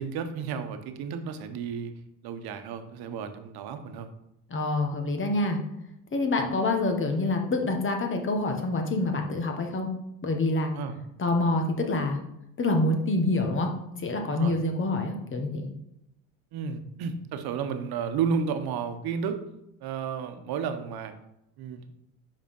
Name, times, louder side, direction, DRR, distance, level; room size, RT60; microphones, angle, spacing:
voice 1, 0.0-1.9 2.2-4.1 10.7-11.0 14.3-14.6 16.5-19.4 19.8-21.1 21.6-21.8, right 6 dB, 65° right, 8 dB, 1.1 m, -32 dB
voice 2, 4.5-5.6 6.1-9.9 10.2-10.7 11.2-12.2 12.6-13.7 14.0-15.7, left 2 dB, 30° left, 3 dB, 1.4 m, -26 dB
5.3 x 5.1 x 5.3 m, 0.82 s
supercardioid pair, 90°, 41 cm